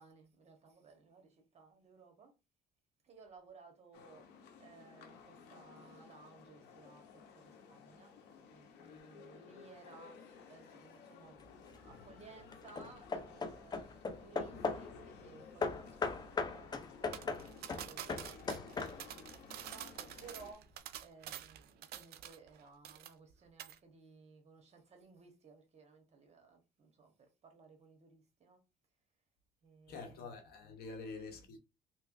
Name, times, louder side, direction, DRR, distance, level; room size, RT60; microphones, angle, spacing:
voice 1, 0.0-2.3 3.0-8.2 8.5-28.6 29.6-30.3, right 4 dB, 40° right, 1.2 m, -59 dB
sound 1, 3.9-20.5, left 6 dB, 85° left, 0.7 m, -56 dB
Hammer / Wood, 11.4-11.9 12.5-15.0 15.6-19.3, left 4 dB, 25° left, 0.5 m, -39 dB
sound 2, 17.1-22.6 22.8-23.3 23.6-23.8, right 11 dB, 70° right, 0.4 m, -48 dB
voice 2, 29.9-31.6, left 4 dB, 70° left, 1.0 m, -46 dB
3.3 x 2.9 x 2.5 m
cardioid pair, 110°, 17 cm